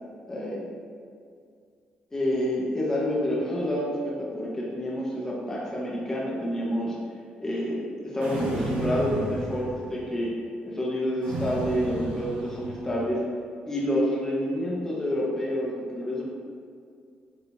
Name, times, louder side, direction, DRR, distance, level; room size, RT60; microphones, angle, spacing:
voice 1, 0.3-0.7 2.1-7.0 7.4-10.3 10.6-13.2 13.7-16.2, equal, 15° left, -5 dB, 1.4 m, -28 dB
sound 1, 8.2-10.1 11.2-13.0, right 2 dB, 75° right, 1.5 m, -34 dB
8.2 x 4.1 x 2.8 m, 2.3 s
cardioid pair, 110°, 3 cm